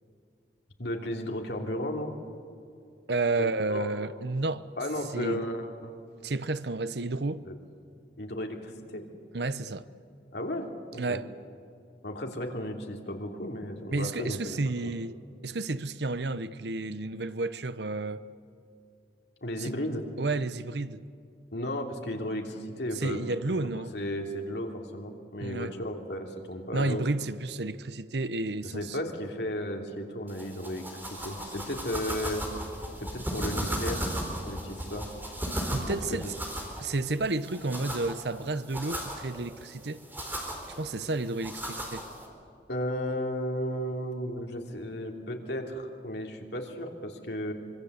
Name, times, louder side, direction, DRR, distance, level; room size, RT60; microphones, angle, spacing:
voice 1, 0.8-2.1 3.4-3.8 4.7-5.9 7.4-7.5 8.2-9.0 10.3-10.7 10.9-11.2 12.0-14.9 19.4-20.1 21.5-27.0 28.7-32.4 33.0-34.1 34.5-35.0 36.1-36.3 42.7-47.5, left 1 dB, 65° left, 3.1 m, -34 dB
voice 2, 3.1-4.6 5.1-5.5 6.2-7.4 9.3-9.9 11.0-11.3 13.9-18.2 19.6-19.7 20.2-21.0 23.0-24.0 25.4-25.7 26.7-29.0 35.7-36.3 36.8-40.0 40.7-42.1, right 2 dB, 65° right, 0.9 m, -31 dB
sound 1, 30.3-42.3, equal, 10° right, 4.2 m, -36 dB
25.0 x 24.0 x 8.1 m
head